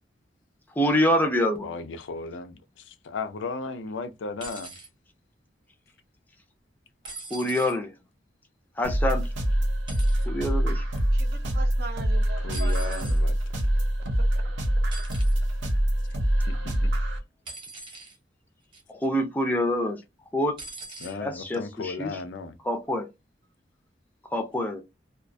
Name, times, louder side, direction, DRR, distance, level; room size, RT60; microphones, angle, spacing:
voice 1, 0.8-1.7 7.3-7.9 8.8-9.3 10.3-10.8 18.9-20.0 20.3-20.6 21.2-22.2 22.6-23.1 24.3-24.8, equal, 10° left, 0.4 m, -26 dB
voice 2, 1.6-4.7 12.4-13.4 16.5-16.9 21.0-22.6, left 4 dB, 85° left, 0.4 m, -35 dB
sound 1, 4.4-4.9 7.0-7.8 9.9-10.3 12.5-13.2 14.9-15.4 17.5-18.2 18.7-19.0 20.6-21.2 22.2-22.3, right 2 dB, 25° right, 0.8 m, -41 dB
sound 2, 8.8-17.2, right 1 dB, 90° right, 0.8 m, -25 dB
voice 3, 11.1-13.1 14.3-14.4, right 3 dB, 55° right, 0.4 m, -40 dB
2.3 x 2.2 x 2.5 m
head